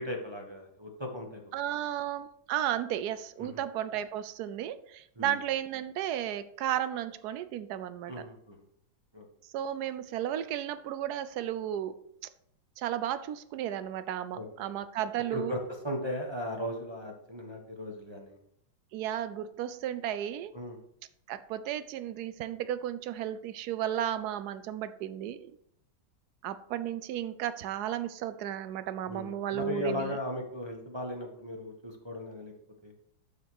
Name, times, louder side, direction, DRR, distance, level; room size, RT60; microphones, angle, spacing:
voice 1, 0.0-1.4 3.4-3.6 5.2-5.4 8.1-8.6 9.1-9.3 14.3-14.7 15.3-18.4 20.5-20.8 29.1-32.5 32.8-32.9, left 1 dB, 15° right, 0 dB, 1.1 m, -37 dB
voice 2, 1.5-8.1 9.5-12.0 12.8-15.5 18.9-20.5 21.3-25.5 26.4-30.2, right 11 dB, 80° right, 13 dB, 0.9 m, -34 dB
12.0 x 4.8 x 4.7 m, 0.71 s
omnidirectional pair, 2.3 m